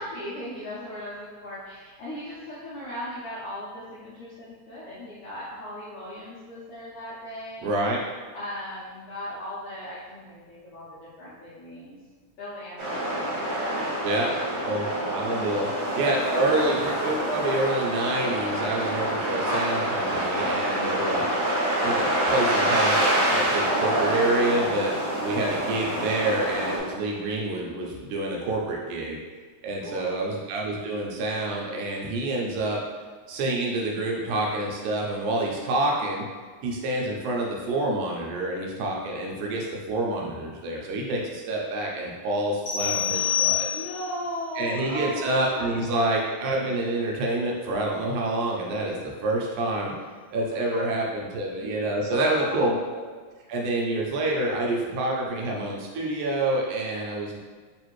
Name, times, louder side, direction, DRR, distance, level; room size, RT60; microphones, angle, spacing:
voice 1, 0.0-7.7 8.3-12.0 12.4-14.1 15.5-16.0 16.3-16.7 29.8-30.2 43.1-46.1 50.5-51.0 52.3-52.8, left 1 dB, 80° left, -9 dB, 1.3 m, -38 dB
voice 2, 7.6-8.0 14.0-14.3 14.6-15.7 16.0-21.2 21.8-24.9 25.2-29.2 29.6-32.8 33.3-36.3 36.6-43.7 44.6-49.9 50.3-52.7 53.5-57.4, right 2 dB, 85° right, -2 dB, 2.1 m, -27 dB
sound 1, 12.8-26.8, right 1 dB, 60° right, 1.4 m, -26 dB
sound 2, 42.7-44.2, left 10 dB, 55° left, 0.6 m, -26 dB
4.9 x 2.5 x 3.0 m, 1.5 s
omnidirectional pair, 3.4 m